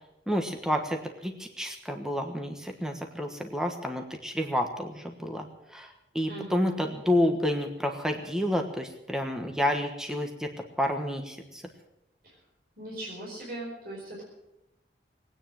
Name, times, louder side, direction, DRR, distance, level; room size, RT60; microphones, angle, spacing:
voice 1, 0.3-5.4 5.7-5.9 6.1-10.5 10.8-11.6, left 1 dB, 5° right, 4 dB, 1.3 m, -29 dB
voice 2, 6.3-6.8 12.2-12.3 12.8-14.2, right 1 dB, 50° right, -4 dB, 4.7 m, -39 dB
20.0 x 9.4 x 7.6 m, 0.88 s
head